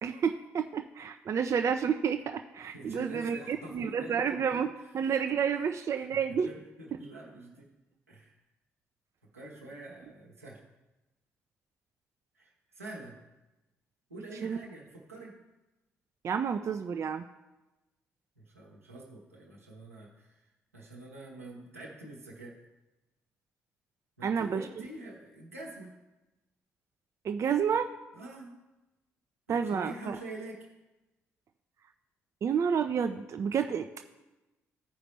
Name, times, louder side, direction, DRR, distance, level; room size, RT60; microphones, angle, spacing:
voice 1, 0.0-6.5 14.4-14.6 16.2-17.3 24.2-24.6 27.2-27.9 29.5-30.2 32.4-33.9, right 7 dB, 40° right, 7 dB, 0.4 m, -30 dB
voice 2, 2.6-4.2 4.7-5.4 6.0-7.7 8.1-8.4 9.3-10.6 12.3-13.2 14.1-15.4 18.4-20.5 20.7-22.6 24.2-26.0 28.1-28.6 29.5-30.7, right 2 dB, 90° right, -4 dB, 1.1 m, -46 dB
14.5 x 4.9 x 3.2 m, 1.0 s
figure-of-eight pair, 40°, 7 cm